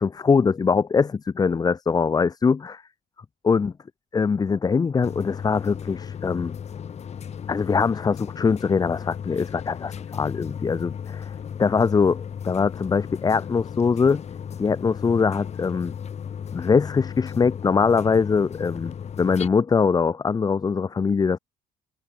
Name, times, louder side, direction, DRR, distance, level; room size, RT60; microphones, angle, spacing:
voice 1, 0.0-2.8 3.4-3.7 4.1-6.5 7.5-11.3 11.6-14.2 14.6-15.9 16.5-21.4, left 5 dB, 25° left, 0.6 m, -22 dB
sound 1, 5.0-19.5, left 8 dB, 40° left, 1.4 m, -35 dB
cardioid pair, 110°, 17 cm